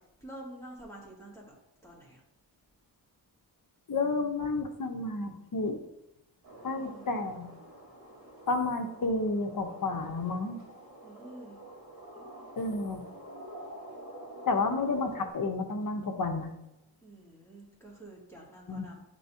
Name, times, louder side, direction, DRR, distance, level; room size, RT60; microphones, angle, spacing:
voice 1, 0.2-1.5 1.8-2.2 6.6-7.0 11.0-11.6 12.2-12.5 17.0-19.0, right 1 dB, 5° left, -4 dB, 2.0 m, -48 dB
voice 2, 3.9-5.8 6.6-7.5 8.5-10.6 12.6-13.0 14.5-16.5 18.7-18.9, left 3 dB, 50° left, 5 dB, 0.8 m, -31 dB
sound 1, 6.4-15.3, right 1 dB, 50° right, 2.0 m, -48 dB
9.8 x 3.5 x 2.8 m, 0.89 s
cardioid pair, 75°, 44 cm